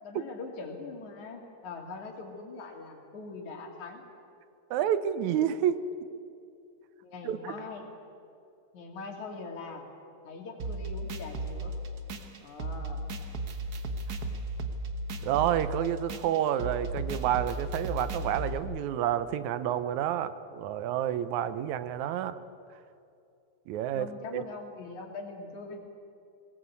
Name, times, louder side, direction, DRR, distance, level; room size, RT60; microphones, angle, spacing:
voice 1, 0.0-4.1 7.0-7.9 8.7-9.9 10.2-11.7 12.4-13.0 23.9-25.8, left 3 dB, 75° left, 2 dB, 3.8 m, -42 dB
voice 2, 4.7-5.8 7.2-7.4 15.2-22.4 23.7-24.4, right 10 dB, 80° right, 13 dB, 2.1 m, -29 dB
sound 1, 10.6-18.6, right 2 dB, 55° right, 1.0 m, -35 dB
20.5 x 18.0 x 8.3 m, 2.6 s
omnidirectional pair, 3.4 m